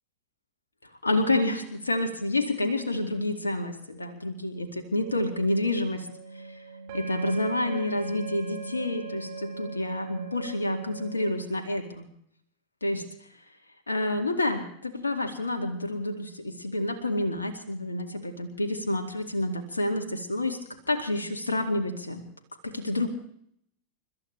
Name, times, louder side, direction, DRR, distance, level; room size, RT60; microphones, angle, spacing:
voice 1, 1.0-6.1 6.3-6.4 6.9-12.1 12.8-13.0 13.9-20.6 20.9-22.2 22.6-23.1, left 2 dB, 75° left, 4 dB, 2.2 m, -29 dB
sound 1, 5.0-11.3, right 4 dB, 50° right, 4.7 m, -39 dB
29.5 x 13.5 x 3.3 m, 0.68 s
figure-of-eight pair, 90°, 0 cm